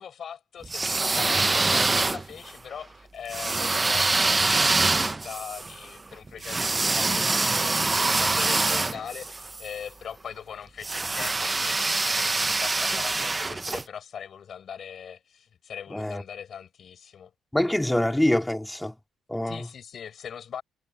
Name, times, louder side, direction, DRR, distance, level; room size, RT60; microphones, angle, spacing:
voice 1, 0.0-17.3 19.5-20.6, left 8 dB, 55° left, 7.2 m, -41 dB
sound 1, 0.6-2.5 3.3-9.7 10.8-13.8, right 3 dB, 20° right, 0.8 m, -25 dB
voice 2, 15.9-16.2 17.5-18.9 19.3-19.7, left 1 dB, 5° left, 3.5 m, -25 dB
supercardioid pair, 80°, 0 cm